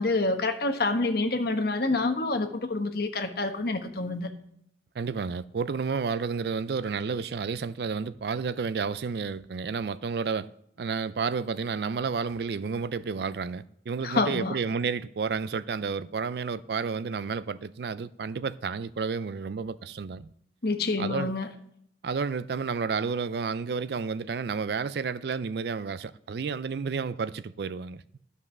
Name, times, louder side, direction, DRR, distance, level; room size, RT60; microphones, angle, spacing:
voice 1, 0.0-4.3 14.0-14.6 20.6-21.5, left 2 dB, 55° left, 1.1 m, -27 dB
voice 2, 5.0-10.5 10.8-20.3 21.0-21.3 22.0-28.0, right 5 dB, 60° right, 0.4 m, -31 dB
12.0 x 5.4 x 6.1 m
head